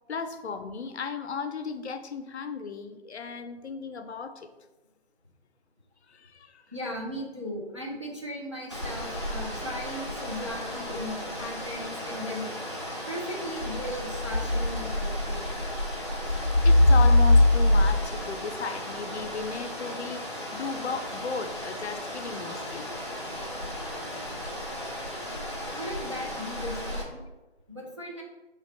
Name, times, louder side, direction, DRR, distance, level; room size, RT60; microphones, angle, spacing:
voice 1, 0.1-4.5 6.1-6.6 16.6-22.9, left 5 dB, 80° left, 8 dB, 0.5 m, -35 dB
voice 2, 6.7-12.5 13.1-15.5 25.7-27.2 27.7-28.2, equal, 30° right, -3 dB, 0.4 m, -37 dB
sound 1, 8.7-27.0, left 1 dB, 25° left, 0.4 m, -27 dB
4.3 x 2.8 x 2.9 m, 1.1 s
figure-of-eight pair, 165°, 32 cm